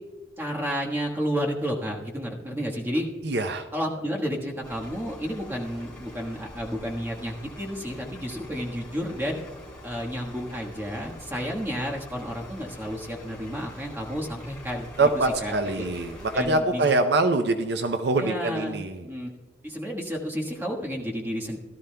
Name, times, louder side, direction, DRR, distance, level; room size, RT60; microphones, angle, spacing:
voice 1, 0.4-3.1 3.7-9.4 9.8-15.1 15.4-15.9 16.3-16.8 18.2-19.3 19.6-21.6, equal, 10° right, -1 dB, 1.3 m, -31 dB
voice 2, 3.2-3.6 15.0-19.0, right 2 dB, 60° right, 7 dB, 0.6 m, -24 dB
sound 1, 4.6-16.5, left 1 dB, 5° left, 2.8 m, -45 dB
17.0 x 12.5 x 2.2 m, 1.4 s
head